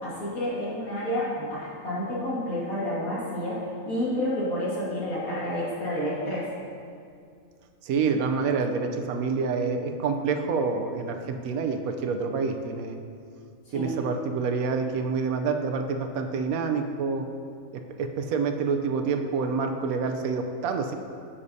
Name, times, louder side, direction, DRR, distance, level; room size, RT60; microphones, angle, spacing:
voice 1, 0.0-6.5 13.7-13.9, left 1 dB, 75° left, -8 dB, 2.4 m, -30 dB
voice 2, 7.8-13.0 13.7-17.3 18.0-20.9, right 5 dB, 80° right, 5 dB, 1.1 m, -27 dB
9.9 x 7.1 x 2.7 m, 2.3 s
omnidirectional pair, 1.5 m